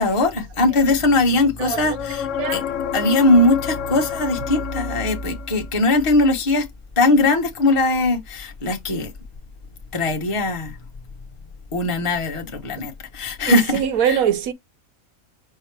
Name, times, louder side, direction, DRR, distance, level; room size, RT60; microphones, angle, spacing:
voice 1, 0.0-2.6 2.9-6.7 7.0-9.1 9.9-10.8 11.7-14.2, left 2 dB, 25° left, 0.9 m, -20 dB
voice 2, 1.6-2.0 2.4-2.6 13.5-14.5, right 9 dB, 75° right, 1.2 m, -22 dB
sound 1, 1.9-5.7 9.4-9.5, left 9 dB, 65° left, 1.0 m, -29 dB
5.7 x 2.0 x 4.6 m
omnidirectional pair, 1.5 m